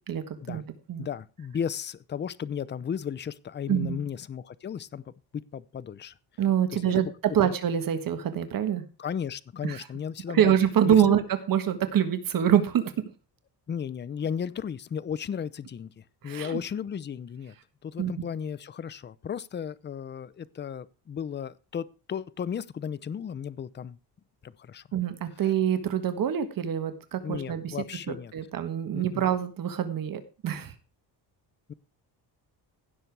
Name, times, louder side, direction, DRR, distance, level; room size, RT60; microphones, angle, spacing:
voice 1, 0.1-0.6 0.9-1.1 3.7-4.0 6.4-7.1 7.3-8.8 9.6-9.8 10.3-11.2 11.5-12.9 16.2-16.6 18.0-18.1 24.9-27.8 28.1-30.7, right 9 dB, 55° right, 1.5 m, -25 dB
voice 2, 1.0-6.1 6.7-7.1 7.4-7.5 9.0-10.5 10.8-11.2 13.7-17.5 17.8-24.0 24.4-24.8 27.2-28.3 28.9-29.2 31.7-31.8, left 7 dB, 25° left, 0.6 m, -35 dB
16.0 x 6.9 x 4.7 m
cardioid pair, 135°, 41 cm